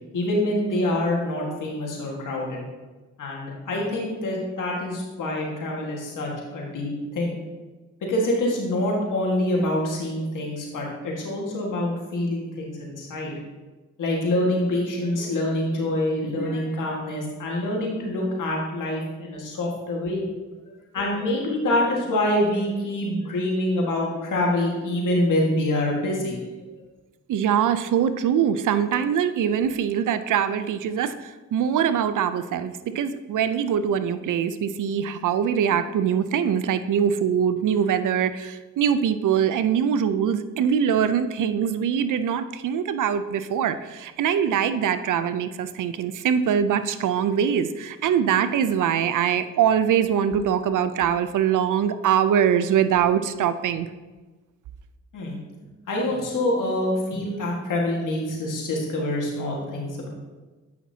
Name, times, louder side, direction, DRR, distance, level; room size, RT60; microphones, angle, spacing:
voice 1, 0.1-2.7 3.2-7.4 8.0-13.3 14.0-20.2 20.9-26.4 55.1-55.4 55.9-60.1, left 1 dB, 85° left, -2 dB, 1.7 m, -26 dB
voice 2, 27.3-53.9, right 8 dB, 80° right, 12 dB, 0.5 m, -23 dB
8.5 x 5.9 x 2.8 m, 1.2 s
cardioid pair, 60°, 31 cm